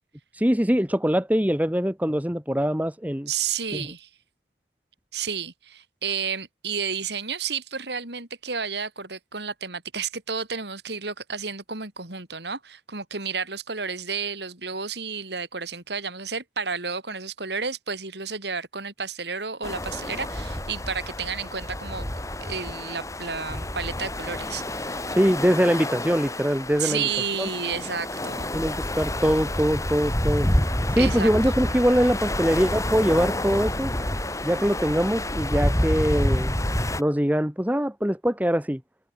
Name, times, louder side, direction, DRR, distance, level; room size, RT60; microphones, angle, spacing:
voice 1, 0.3-3.3 3.7-3.9 25.1-27.0 27.4-27.5 28.5-30.5 30.9-33.9 34.4-36.5 37.0-38.8, equal, 10° right, 1.5 m, -23 dB
voice 2, 3.3-4.1 5.1-22.1 22.4-25.0 26.8-28.5 31.0-31.6, right 6 dB, 70° right, 4.2 m, -31 dB
sound 1, 19.6-37.0, left 1 dB, 15° left, 4.2 m, -28 dB
head